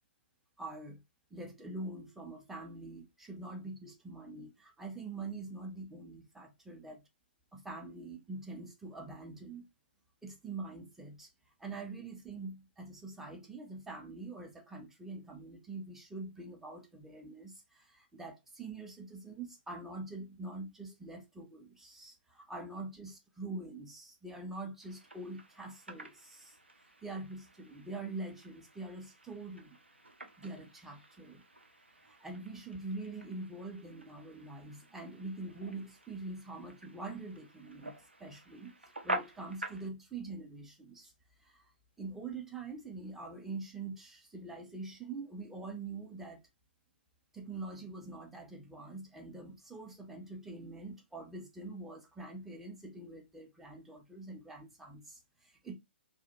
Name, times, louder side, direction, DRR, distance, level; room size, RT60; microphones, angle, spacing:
voice 1, 0.6-1.0 1.3-7.0 7.5-9.7 10.2-11.3 11.6-26.5 27.0-29.8 30.4-31.4 32.1-41.1 41.5-41.6 42.0-46.4 47.3-55.8, right 3 dB, 5° right, 0.4 m, -44 dB
sound 1, 24.8-39.9, right 1 dB, 80° right, 0.6 m, -47 dB
2.3 x 2.0 x 2.7 m
figure-of-eight pair, 125°, 6 cm